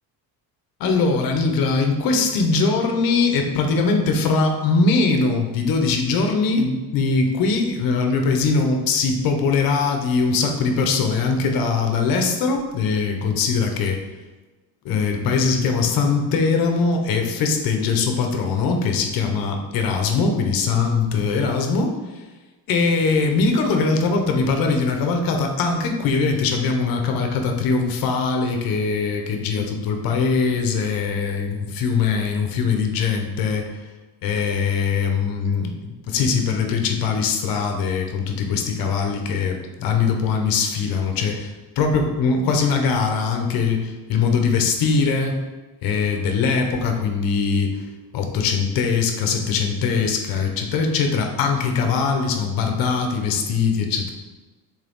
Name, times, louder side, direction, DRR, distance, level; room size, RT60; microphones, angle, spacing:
voice 1, 0.8-14.0 14.8-21.9 22.7-33.7 34.2-45.4 45.8-47.8 48.1-54.1, left 4 dB, 60° left, 4 dB, 1.0 m, -21 dB
6.5 x 4.2 x 3.7 m, 1.2 s
cardioid pair, 170°, 39 cm